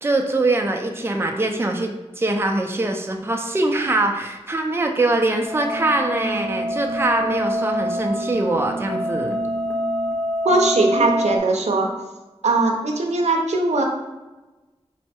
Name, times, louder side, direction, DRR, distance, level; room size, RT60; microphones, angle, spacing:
voice 1, 0.0-9.4, right 2 dB, 20° right, 2 dB, 0.4 m, -23 dB
sound 1, 5.4-11.4, equal, 15° left, 0.9 m, -26 dB
voice 2, 10.4-11.9 12.4-13.8, right 2 dB, 85° right, 2 dB, 0.6 m, -20 dB
4.5 x 2.1 x 4.2 m, 1.1 s
wide cardioid pair, 60°, 11 cm